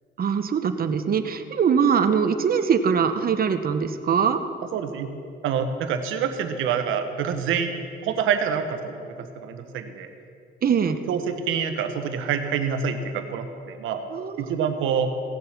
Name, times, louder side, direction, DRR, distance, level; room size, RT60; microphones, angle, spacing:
voice 1, 0.2-4.4 10.6-11.0 14.1-14.5, right 6 dB, 50° right, 9 dB, 1.0 m, -22 dB
voice 2, 4.7-5.1 5.4-7.7 8.0-10.1 11.1-14.0 14.4-15.1, right 7 dB, 90° right, 7 dB, 1.2 m, -26 dB
17.5 x 7.5 x 6.0 m, 2.4 s
cardioid pair, 90°, 20 cm